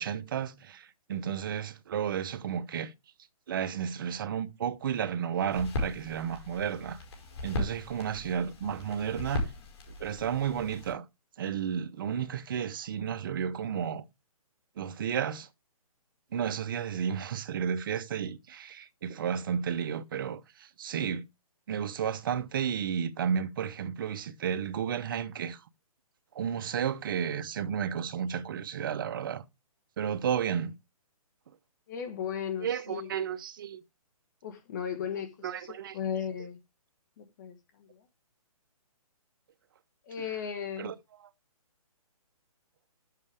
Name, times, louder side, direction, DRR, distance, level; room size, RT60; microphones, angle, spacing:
voice 1, 0.0-2.9 3.5-7.0 7.4-9.5 10.0-11.0 11.4-14.0 14.8-15.5 16.3-21.2 21.7-25.6 26.3-29.4 30.0-30.7 32.6-33.8 35.4-36.0 40.2-40.3 40.8-40.9, right 8 dB, 35° right, 0.8 m, -32 dB
sound 1, 5.5-10.9, left 2 dB, 45° left, 5.0 m, -37 dB
voice 2, 31.9-33.1 34.4-35.5 35.9-36.6 37.2-37.5 40.1-40.9, left 8 dB, 30° left, 1.5 m, -35 dB
11.0 x 7.9 x 3.4 m
hypercardioid pair, 165°, 19 cm